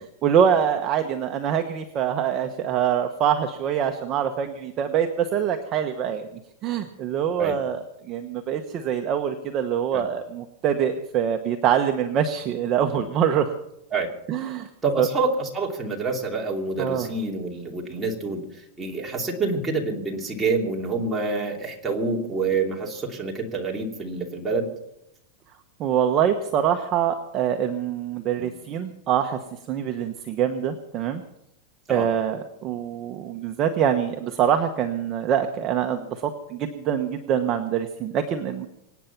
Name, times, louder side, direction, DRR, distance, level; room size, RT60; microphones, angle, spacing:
voice 1, 0.2-6.3 6.6-13.6 14.3-14.7 15.0-15.1 16.8-17.1 25.8-29.4 29.7-31.2 31.9-38.7, right 8 dB, 30° right, 5 dB, 1.1 m, -24 dB
voice 2, 14.8-18.4 18.8-24.7 28.3-28.5 31.9-32.1, right 3 dB, 10° right, -1 dB, 2.8 m, -27 dB
25.5 x 9.2 x 5.9 m, 0.81 s
supercardioid pair, 150°, 0 cm